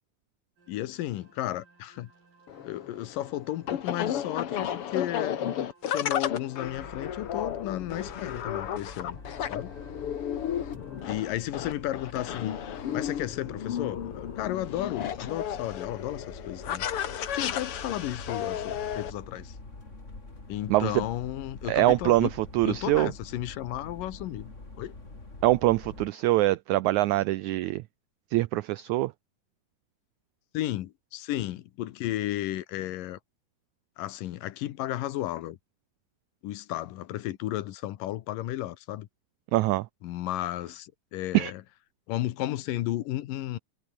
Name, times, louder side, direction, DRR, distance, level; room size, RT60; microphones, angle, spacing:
sound 1, 0.6-15.4, right 4 dB, 70° right, 8.9 m, -60 dB
voice 1, 0.7-2.1 2.6-5.4 5.8-9.2 9.5-9.7 11.1-12.6 12.9-16.9 17.3-19.6 20.5-22.3 22.6-24.5 24.8-25.0 30.5-33.2 34.0-35.6 36.4-39.1 40.0-41.6 42.1-43.6, left 14 dB, 75° left, 2.7 m, -33 dB
sound 2, 2.5-19.1, left 10 dB, 55° left, 1.8 m, -33 dB
sound 3, 6.6-26.1, left 2 dB, 20° left, 4.1 m, -45 dB
voice 2, 20.7-21.0 21.7-23.1 25.4-27.8 28.3-29.1 39.5-39.9 41.3-41.5, right 17 dB, 85° right, 1.7 m, -24 dB
omnidirectional pair, 4.0 m